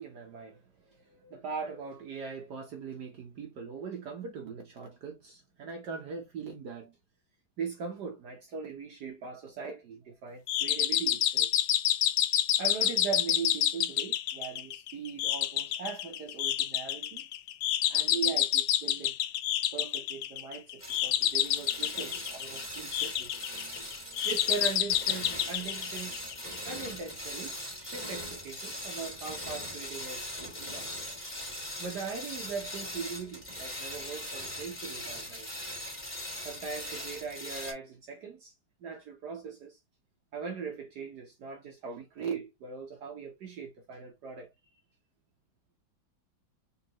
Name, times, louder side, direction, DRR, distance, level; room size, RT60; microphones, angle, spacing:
voice 1, 0.0-6.9 7.6-11.5 12.6-17.3 17.9-19.1 19.7-23.3 24.2-26.2 26.6-27.5 27.8-30.9 31.8-35.5 36.4-38.5 38.8-39.8 40.3-44.5, right 5 dB, 60° right, 1.4 m, -40 dB
sound 1, 10.5-26.6, left 12 dB, 80° left, 1.2 m, -29 dB
sound 2, 20.8-37.7, left 1 dB, 5° left, 2.3 m, -40 dB
4.2 x 3.8 x 2.9 m
omnidirectional pair, 2.1 m